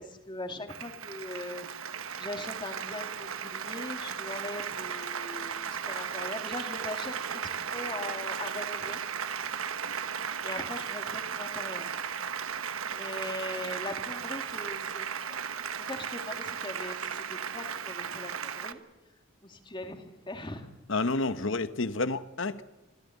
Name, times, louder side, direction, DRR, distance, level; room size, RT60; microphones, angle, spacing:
voice 1, 0.0-1.7 2.2-9.0 10.4-12.0 12.9-15.4 15.8-18.8 19.4-20.7, left 1 dB, 25° left, 2.4 m, -40 dB
Applause, 0.7-18.7, right 7 dB, 90° right, 1.1 m, -36 dB
voice 2, 20.9-22.6, left 3 dB, 65° left, 1.1 m, -29 dB
26.0 x 15.0 x 9.5 m
head